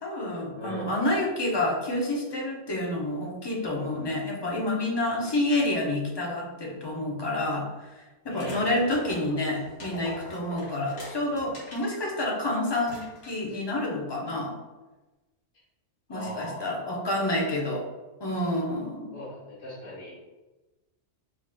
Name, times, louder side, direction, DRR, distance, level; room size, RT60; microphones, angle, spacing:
voice 1, 0.0-14.6 16.1-17.9 18.2-19.1, left 1 dB, 25° left, -2 dB, 0.6 m, -29 dB
voice 2, 0.6-1.0 8.3-8.7 16.1-16.7 19.1-20.1, left 1 dB, 90° left, -7 dB, 1.3 m, -38 dB
sound 1, 8.3-11.9 12.4-12.5 12.8-13.6, left 1 dB, 55° left, 1.6 m, -42 dB
4.8 x 2.9 x 2.2 m, 1.1 s
omnidirectional pair, 1.3 m